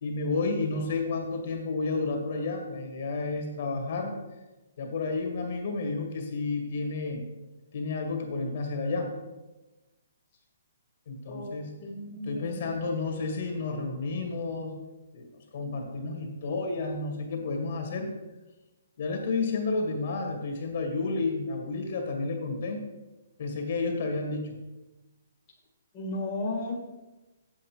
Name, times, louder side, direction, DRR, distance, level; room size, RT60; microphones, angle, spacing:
voice 1, 0.0-4.2 4.8-7.2 7.7-9.2 11.1-11.7 12.2-14.8 15.1-18.1 19.0-22.8 23.4-24.5, left 3 dB, 45° left, 2 dB, 2.0 m, -31 dB
voice 2, 11.8-12.7 25.9-26.7, left 2 dB, 20° left, -4 dB, 1.7 m, -34 dB
8.0 x 7.8 x 4.6 m, 1.1 s
hypercardioid pair, 170°, 0 cm